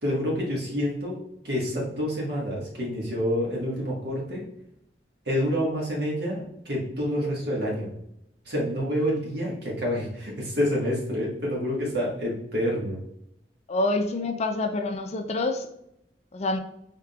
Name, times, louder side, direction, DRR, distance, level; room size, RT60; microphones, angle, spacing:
voice 1, 0.0-4.4 5.3-7.9 8.4-13.0, equal, 65° right, -3 dB, 1.6 m, -28 dB
voice 2, 13.7-15.7 16.3-16.6, left 2 dB, 40° left, 6 dB, 0.4 m, -27 dB
4.8 x 3.6 x 2.4 m, 0.78 s
head